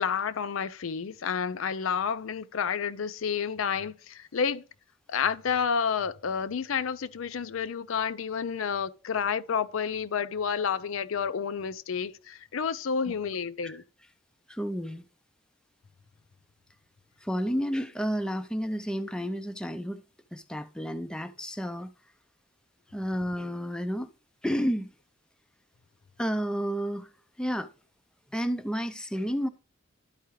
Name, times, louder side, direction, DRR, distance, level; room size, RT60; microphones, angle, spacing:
voice 1, 0.0-4.6 5.1-13.8, left 6 dB, 80° left, 0.5 m, -30 dB
voice 2, 14.5-15.0 17.2-20.0 20.3-21.9 22.9-24.1 24.4-24.9 26.2-27.1 27.4-27.7 28.3-29.5, equal, 5° left, 0.4 m, -31 dB
12.5 x 4.7 x 3.1 m
head